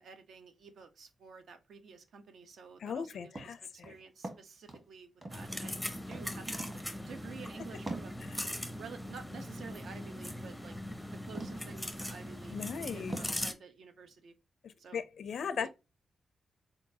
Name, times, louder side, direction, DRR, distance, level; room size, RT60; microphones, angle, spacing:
voice 1, 0.0-5.7 6.1-8.1 8.8-10.8 11.1-14.3 14.8-15.0 15.5-15.7, right 5 dB, 70° right, 0.8 m, -51 dB
voice 2, 2.8-3.9 8.2-8.4 12.5-13.2 14.6-15.7, left 6 dB, 70° left, 0.4 m, -38 dB
sound 1, 3.4-3.6 3.8-4.9 5.2-5.8 6.1-6.3 6.5-7.0 7.2-7.4 7.9-8.1 10.5-10.6 11.3-11.8 12.3-12.4 13.1-13.4, right 2 dB, 30° right, 1.4 m, -42 dB
sound 2, 5.3-13.5, left 1 dB, ahead, 0.6 m, -40 dB
4.4 x 3.8 x 2.7 m
wide cardioid pair, 165°, 0 cm